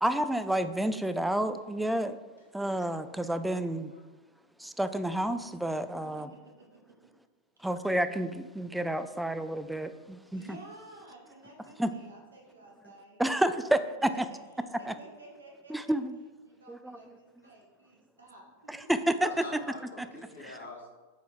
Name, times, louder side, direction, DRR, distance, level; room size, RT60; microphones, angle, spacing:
voice 1, 0.0-2.2 2.5-3.9 4.6-6.3 7.6-10.4 11.8-11.9 13.2-14.2 14.9-15.0 15.7-16.2 16.7-17.0 18.7-19.3 20.2-20.6, right 1 dB, 5° right, 11 dB, 0.4 m, -30 dB
voice 2, 6.0-7.1 7.6-7.7 10.3-15.7 16.4-18.9, right 2 dB, 85° right, -1 dB, 1.5 m, -53 dB
voice 3, 19.2-20.9, left 2 dB, 80° left, 0 dB, 1.2 m, -44 dB
6.3 x 4.4 x 3.5 m, 1.3 s
hypercardioid pair, 95°, 0 cm